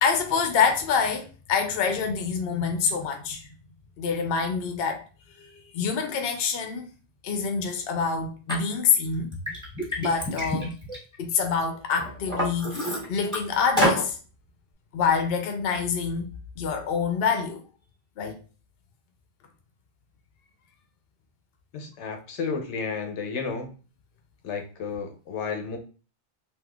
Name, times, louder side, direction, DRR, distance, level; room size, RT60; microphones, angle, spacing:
voice 1, 0.0-3.5 4.0-5.0 5.4-6.9 7.2-9.3 10.0-10.7 11.2-14.2 14.9-16.3 16.6-17.6 18.2-18.4, left 6 dB, 65° left, 0.8 m, -26 dB
Liquid, 8.5-8.6 9.1-11.5 12.0-13.4 13.8-14.0, equal, 5° left, 1.3 m, -28 dB
voice 2, 21.7-23.7 24.4-25.8, left 5 dB, 85° left, 1.0 m, -32 dB
3.5 x 2.7 x 2.3 m
omnidirectional pair, 1.2 m